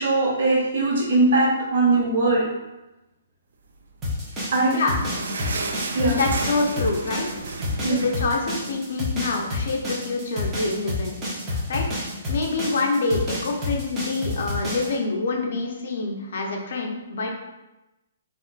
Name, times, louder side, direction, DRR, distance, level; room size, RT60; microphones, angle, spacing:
voice 1, 0.0-2.4 4.5-4.8 5.9-6.2 7.8-8.0 11.5-11.6, right 2 dB, 60° right, -5 dB, 1.4 m, -20 dB
sound 1, 4.0-14.9, left 2 dB, 15° right, 0.7 m, -29 dB
sound 2, 4.3-9.0 9.4-9.5 9.8-9.9 10.6-10.7, right 3 dB, 75° right, 0.4 m, -34 dB
voice 2, 6.1-7.3 7.6-11.2 11.7-11.9 12.3-17.3, left 3 dB, 60° left, 0 dB, 0.6 m, -26 dB
3.5 x 2.5 x 2.4 m, 1.0 s
hypercardioid pair, 165°, 0 cm